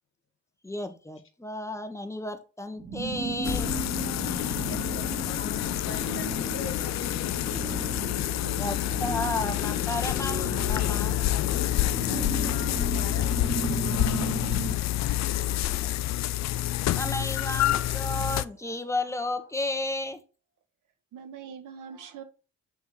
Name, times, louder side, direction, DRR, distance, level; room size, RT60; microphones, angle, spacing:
voice 1, 0.6-3.7 8.6-11.2 15.7-15.9 16.9-20.2, left 2 dB, 10° left, 1.3 m, -33 dB
sound 1, 2.8-14.8, right 4 dB, 25° right, 1.6 m, -36 dB
sound 2, 3.4-18.5, left 14 dB, 65° left, 0.5 m, -28 dB
voice 2, 4.6-7.6 12.1-15.5, left 4 dB, 45° left, 1.9 m, -43 dB
voice 3, 17.7-18.9 21.1-22.2, right 7 dB, 90° right, 1.4 m, -45 dB
8.2 x 3.5 x 5.7 m
cardioid pair, 90°, 30 cm